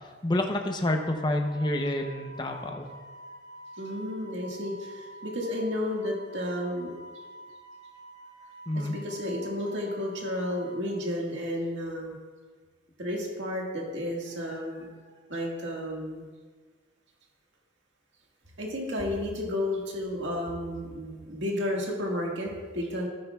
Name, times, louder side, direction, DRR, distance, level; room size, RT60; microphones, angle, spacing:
voice 1, 0.2-2.9 8.7-8.9, left 1 dB, 25° left, 3 dB, 0.7 m, -28 dB
Wind instrument woodwind instrument, 0.9-10.8, right 1 dB, 55° left, 1.1 m, -47 dB
voice 2, 3.8-6.9 8.7-12.2 13.0-14.9 15.3-16.3 18.6-23.1, left 1 dB, 75° right, -1 dB, 1.8 m, -32 dB
13.0 x 9.9 x 2.4 m, 1.4 s
head